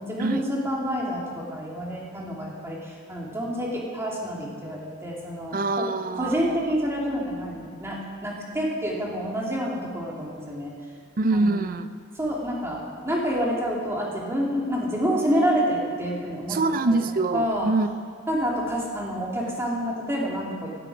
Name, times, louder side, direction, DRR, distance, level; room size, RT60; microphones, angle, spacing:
voice 1, 0.0-5.8 6.2-10.7 11.3-11.5 12.2-16.6 16.9-17.0 17.3-17.7 18.3-20.7, equal, 10° right, -4 dB, 2.9 m, -28 dB
voice 2, 5.5-6.7 11.2-11.9 16.5-17.9, right 3 dB, 40° right, 11 dB, 0.6 m, -25 dB
16.5 x 13.0 x 5.0 m, 2.1 s
head